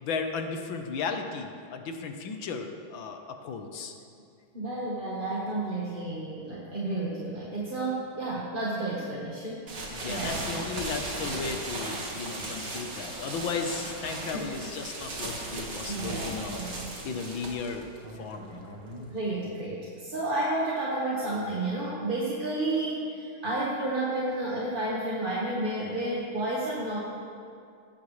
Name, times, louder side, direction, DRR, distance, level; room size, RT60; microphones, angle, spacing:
voice 1, 0.0-3.9 9.9-16.6 17.1-17.9 18.2-18.8, left 5 dB, 70° left, 5 dB, 1.8 m, -35 dB
voice 2, 4.5-10.6 12.0-12.1 14.2-14.5 15.9-17.0 19.1-27.0, right 2 dB, 30° right, -5 dB, 1.4 m, -31 dB
sound 1, 9.7-19.3, right 2 dB, 55° right, 2.4 m, -37 dB
18.0 x 14.0 x 3.3 m, 2.4 s
omnidirectional pair, 2.3 m